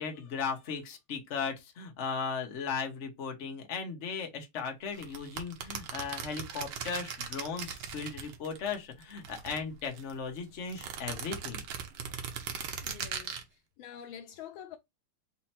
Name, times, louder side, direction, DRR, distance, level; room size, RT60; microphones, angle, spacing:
voice 1, 0.0-11.6, left 5 dB, 40° left, 1.1 m, -37 dB
sound 1, 4.9-8.7 9.0-10.1 10.7-13.4, right 7 dB, 80° right, 1.7 m, -39 dB
voice 2, 12.8-14.8, left 9 dB, 75° left, 1.3 m, -47 dB
4.3 x 2.8 x 4.2 m
omnidirectional pair, 2.3 m